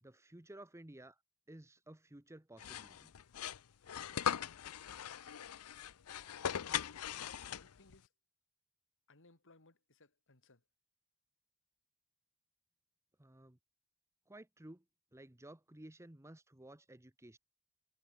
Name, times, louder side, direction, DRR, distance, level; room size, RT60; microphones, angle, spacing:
voice 1, 0.0-1.2 1.5-3.1 13.2-13.6 14.3-14.8 15.1-17.4, right 1 dB, 15° right, 1.0 m, -55 dB
sound 1, 2.6-7.9, left 9 dB, 80° left, 0.6 m, -40 dB
voice 2, 7.2-8.1 9.1-10.6, left 2 dB, 60° left, 3.3 m, -64 dB
head